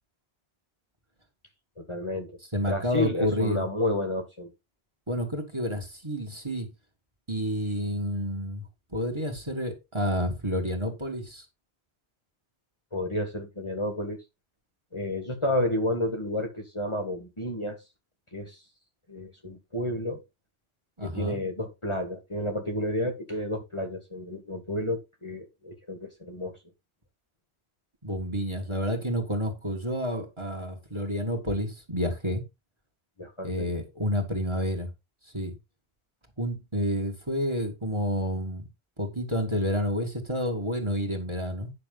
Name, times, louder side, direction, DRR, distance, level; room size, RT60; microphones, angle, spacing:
voice 1, 1.8-2.4 2.7-4.5 12.9-14.2 14.9-17.8 18.3-18.6 19.1-20.2 21.0-26.6 33.2-33.7, left 1 dB, 25° left, 1.9 m, -31 dB
voice 2, 2.5-3.7 5.1-6.7 7.3-8.6 8.9-11.5 21.0-21.4 28.0-32.4 33.4-34.9 35.3-35.6 36.4-38.7 39.0-41.7, equal, 25° right, 2.2 m, -29 dB
9.8 x 6.4 x 3.9 m
omnidirectional pair, 1.1 m